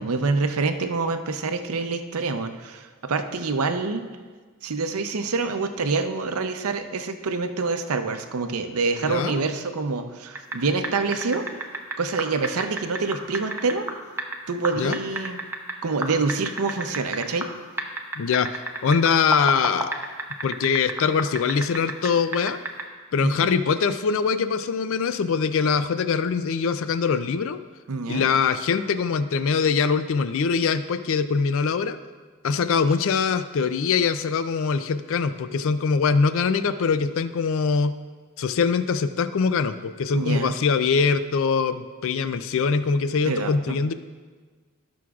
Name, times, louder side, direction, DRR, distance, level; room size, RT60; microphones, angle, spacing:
voice 1, 0.0-4.0 4.6-11.5 12.0-13.9 14.5-15.4 15.8-17.5 23.2-23.5 27.9-28.3 40.1-40.6 43.2-43.8, right 4 dB, 75° right, 7 dB, 0.6 m, -26 dB
voice 2, 9.1-9.5 14.8-15.0 18.2-18.5 18.8-19.9 20.4-22.6 23.1-27.6 28.1-32.0 32.4-38.0 38.4-43.9, left 5 dB, 60° left, 12 dB, 0.4 m, -23 dB
sound 1, 10.4-10.6 10.8-14.4 14.6-15.7 16.0-17.5 17.8-22.1 22.3-22.8, right 2 dB, 10° right, 0.6 m, -29 dB
17.0 x 6.1 x 2.4 m, 1.4 s
head